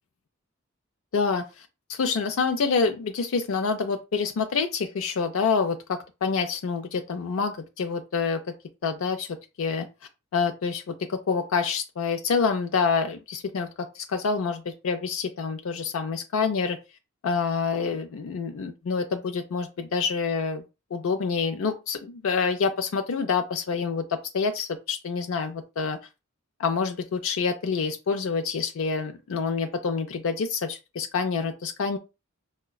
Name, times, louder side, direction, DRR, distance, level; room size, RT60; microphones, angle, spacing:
voice 1, 1.1-1.4 1.9-8.4 8.8-9.3 9.6-9.9 10.3-16.8 17.2-20.6 20.9-26.0 26.6-32.0, left 5 dB, 75° left, 0.4 m, -27 dB
4.7 x 2.2 x 2.3 m
head